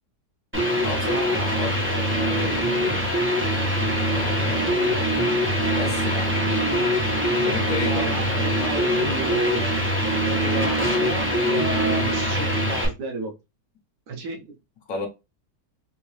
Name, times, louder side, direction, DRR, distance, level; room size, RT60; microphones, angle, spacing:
sound 1, 0.5-12.8, equal, 10° right, 0.9 m, -23 dB
voice 1, 0.8-3.1 4.0-4.6 5.7-6.4 7.5-8.2 14.9-15.1, left 4 dB, 60° left, 1.1 m, -32 dB
voice 2, 4.5-5.1 7.8-9.7 10.2-13.3 14.1-14.5, right 2 dB, 80° right, 1.5 m, -33 dB
3.6 x 2.8 x 3.2 m
omnidirectional pair, 1.8 m